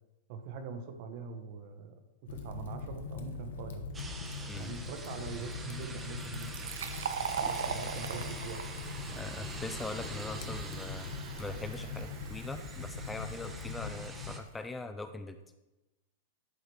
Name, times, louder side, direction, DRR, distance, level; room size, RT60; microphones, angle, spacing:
voice 1, 0.3-2.0 2.3-3.9 4.6-6.7 7.4-8.6 8.9-9.0, right 5 dB, 55° right, 8 dB, 0.9 m, -43 dB
Fire, 2.3-14.4, left 5 dB, 80° left, 0.7 m, -42 dB
sound 1, 3.9-14.4, right 3 dB, 15° right, 0.7 m, -46 dB
Fill (with liquid), 6.2-13.6, right 7 dB, 90° right, 0.5 m, -41 dB
voice 2, 9.1-11.1 11.4-15.4, left 2 dB, 10° left, 9 dB, 0.3 m, -41 dB
11.0 x 3.9 x 3.2 m, 1.0 s
hypercardioid pair, 135°, 0 cm